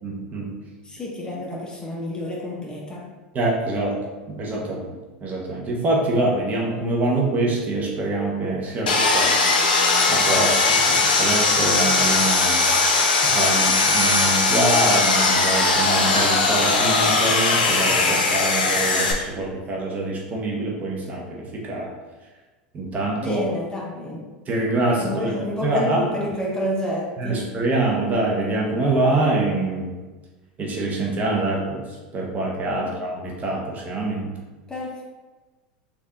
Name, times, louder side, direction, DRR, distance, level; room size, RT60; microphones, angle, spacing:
voice 1, 0.0-0.5 3.3-9.7 10.1-12.8 13.2-21.9 22.7-23.5 24.5-25.3 25.6-26.0 27.2-30.0 30.6-34.4, right 2 dB, 35° right, -2 dB, 0.9 m, -25 dB
voice 2, 0.8-3.1 23.1-24.3 25.0-27.5 32.7-32.9 34.7-35.0, left 1 dB, 15° left, -3 dB, 0.8 m, -29 dB
Sawing, 8.9-19.1, left 3 dB, 85° left, 0.6 m, -19 dB
3.6 x 2.6 x 3.5 m, 1.2 s
hypercardioid pair, 95°, 5 cm